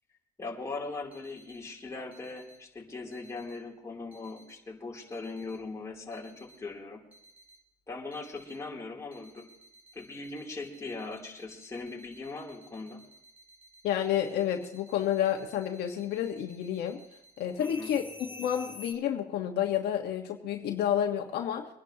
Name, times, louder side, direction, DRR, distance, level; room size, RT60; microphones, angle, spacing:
voice 1, 0.4-7.0 7.9-9.5 9.9-13.0 17.6-17.9, left 3 dB, 20° left, -3 dB, 3.2 m, -40 dB
sound 1, 1.1-1.6 2.1-2.6 3.1-3.6 4.1-4.6 5.1-5.6 6.1-6.6 7.1-7.6 8.1-8.6 9.1-18.9, left 1 dB, 10° right, 2.7 m, -52 dB
voice 2, 13.8-17.0 17.4-21.7, left 10 dB, 75° left, 2 dB, 1.5 m, -30 dB
25.0 x 11.0 x 2.9 m, 0.87 s
cardioid pair, 110°, 17 cm